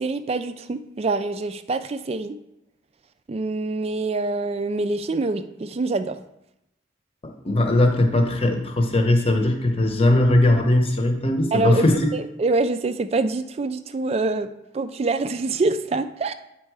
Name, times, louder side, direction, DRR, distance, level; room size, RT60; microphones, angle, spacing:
voice 1, 0.0-2.4 3.3-6.2 11.5-11.8 12.1-14.5 14.7-16.3, right 3 dB, 30° right, 11 dB, 0.3 m, -25 dB
voice 2, 7.2-12.1, left 1 dB, 30° left, 4 dB, 0.9 m, -19 dB
8.7 x 4.5 x 4.7 m, 0.87 s
head